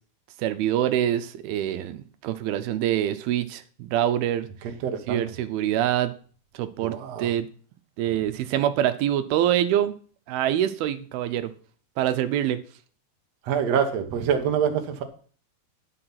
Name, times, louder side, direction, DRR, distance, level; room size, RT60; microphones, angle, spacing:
voice 1, 0.4-4.5 5.1-6.1 6.5-7.5 8.0-9.9 10.3-11.5 12.0-12.6, right 11 dB, 85° right, 10 dB, 2.7 m, -25 dB
voice 2, 4.6-5.2 6.8-7.3 8.1-8.2 13.4-15.0, right 7 dB, 60° right, 5 dB, 2.0 m, -26 dB
10.0 x 7.0 x 5.8 m, 0.42 s
omnidirectional pair, 4.3 m